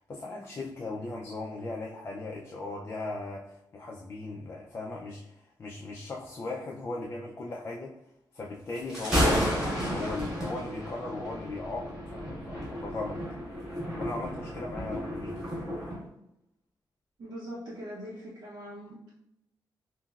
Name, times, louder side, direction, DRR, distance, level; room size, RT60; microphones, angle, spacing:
voice 1, 0.0-8.0 8.3-13.2 13.9-15.5, left 2 dB, 30° left, -2 dB, 0.3 m, -38 dB
Thunder, 8.8-16.0, equal, 10° right, 1.3 m, -32 dB
voice 2, 17.2-19.1, equal, 65° right, -6 dB, 0.6 m, -41 dB
5.8 x 2.0 x 2.3 m, 0.80 s
wide cardioid pair, 175°, 8 cm